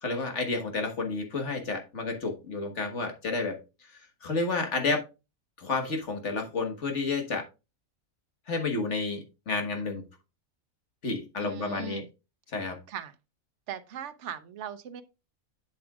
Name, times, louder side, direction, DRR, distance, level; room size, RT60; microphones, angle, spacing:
voice 1, 0.0-3.6 4.2-5.0 5.6-7.4 8.5-9.2 9.5-10.0 11.0-12.0 12.5-12.8, left 3 dB, 55° left, 1.7 m, -30 dB
voice 2, 11.4-12.1 12.9-13.1 13.7-15.0, right 8 dB, 60° right, 1.1 m, -39 dB
7.8 x 7.5 x 2.4 m
omnidirectional pair, 1.5 m